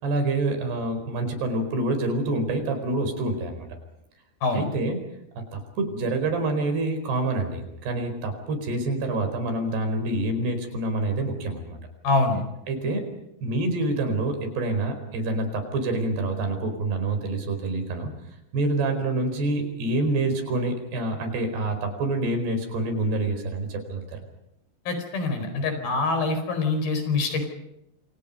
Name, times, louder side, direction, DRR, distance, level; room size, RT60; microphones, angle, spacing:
voice 1, 0.0-3.7 4.5-5.0 5.4-11.8 12.7-13.1 13.4-18.1 18.5-24.0, right 2 dB, 80° right, 7 dB, 6.6 m, -27 dB
voice 2, 12.0-12.4 24.9-27.5, left 3 dB, 65° left, 7 dB, 6.5 m, -25 dB
28.0 x 27.5 x 5.4 m, 0.85 s
omnidirectional pair, 4.6 m